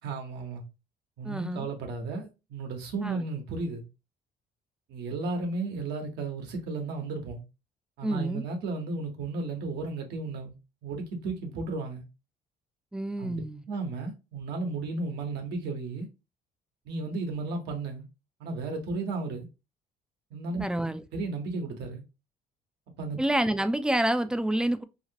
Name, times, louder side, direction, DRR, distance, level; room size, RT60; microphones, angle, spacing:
voice 1, 0.0-0.6 1.2-3.8 4.9-7.4 8.0-10.5 10.8-12.0 13.2-13.4 13.7-16.1 16.9-18.0 18.4-19.5 20.3-22.0 23.0-23.2, right 3 dB, 80° right, 1.1 m, -34 dB
voice 2, 1.2-1.7 3.0-3.2 8.0-8.4 12.9-13.6 20.6-21.0 23.2-24.8, right 1 dB, 5° right, 0.3 m, -28 dB
2.9 x 2.8 x 2.8 m
cardioid pair, 110°, 17 cm